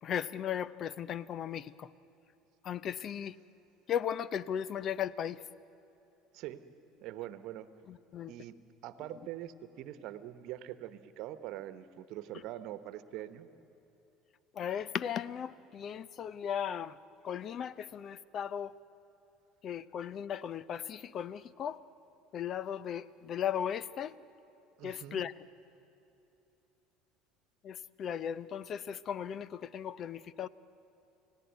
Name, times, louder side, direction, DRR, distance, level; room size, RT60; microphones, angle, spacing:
voice 1, 0.0-1.9 2.6-3.4 3.9-5.4 7.9-8.3 14.5-17.0 17.2-18.7 19.6-21.8 22.3-24.2 24.8-25.3 27.6-30.5, left 9 dB, 45° left, 19 dB, 0.6 m, -36 dB
voice 2, 7.0-7.7 8.3-8.5 8.8-13.5 24.8-25.2, right 13 dB, 60° right, 12 dB, 1.1 m, -43 dB
29.0 x 17.0 x 9.4 m, 2.9 s
hypercardioid pair, 65°, 0 cm